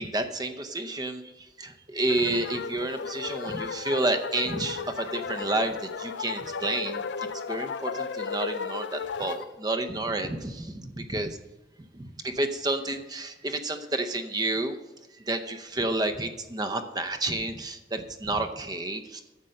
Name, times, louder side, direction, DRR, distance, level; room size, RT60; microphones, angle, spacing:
voice 1, 0.0-7.0 7.5-11.4 12.0-14.8 15.3-19.2, right 2 dB, 20° right, 8 dB, 0.7 m, -30 dB
sound 1, 2.1-9.5, left 5 dB, 75° left, 0.5 m, -34 dB
9.8 x 7.6 x 6.5 m, 1.1 s
head